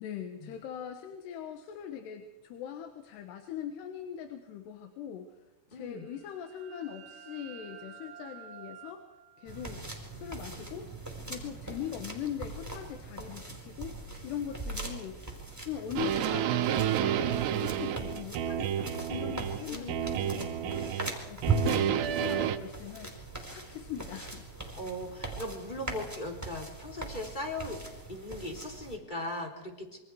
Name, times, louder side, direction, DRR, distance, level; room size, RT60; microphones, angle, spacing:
voice 1, 0.0-5.3 5.7-9.0 9.4-9.8 10.1-10.9 11.2-15.2 15.7-21.0 21.3-23.2 23.5-24.5, left 9 dB, 75° left, 6 dB, 3.4 m, -41 dB
voice 2, 5.7-6.0 19.7-20.3 21.6-21.9 24.7-27.8 28.1-30.0, left 1 dB, 10° left, 1 dB, 3.2 m, -39 dB
sound 1, 5.9-11.4, right 8 dB, 45° right, 3.0 m, -52 dB
sound 2, 9.5-29.0, right 3 dB, 5° right, 4.1 m, -40 dB
sound 3, 16.0-19.6 19.9-21.2 21.4-22.6, right 10 dB, 80° right, 3.2 m, -30 dB
27.5 x 24.5 x 4.8 m, 1.0 s
omnidirectional pair, 4.9 m